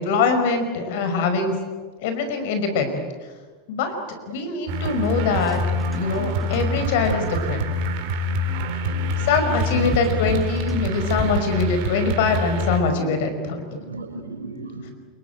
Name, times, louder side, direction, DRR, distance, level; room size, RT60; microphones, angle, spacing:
voice 1, 0.0-1.6 2.0-3.1 3.7-3.9 4.3-5.6 5.9-7.7 9.2-13.6, left 4 dB, 65° left, 7 dB, 5.2 m, -23 dB
sound 1, 4.7-12.8, left 1 dB, 55° right, 3.9 m, -26 dB
sound 2, 5.0-7.5 9.1-11.6, equal, ahead, 7.6 m, -34 dB
voice 2, 8.7-9.1 9.7-9.9 11.7-11.8 12.8-13.0 13.7-14.9, right 3 dB, 85° right, 6 dB, 4.1 m, -34 dB
27.5 x 23.0 x 9.2 m, 1.4 s
hypercardioid pair, 85°, 0 cm